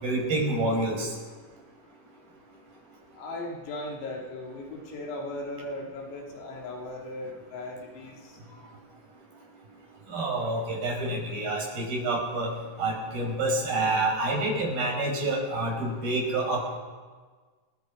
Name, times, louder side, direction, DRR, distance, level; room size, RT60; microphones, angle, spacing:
voice 1, 0.0-1.1 10.1-12.5 12.8-16.6, right 2 dB, 45° right, 0 dB, 7.1 m, -28 dB
voice 2, 3.1-8.4, left 2 dB, 85° left, -1 dB, 5.8 m, -37 dB
28.0 x 22.5 x 5.3 m, 1.5 s
omnidirectional pair, 5.9 m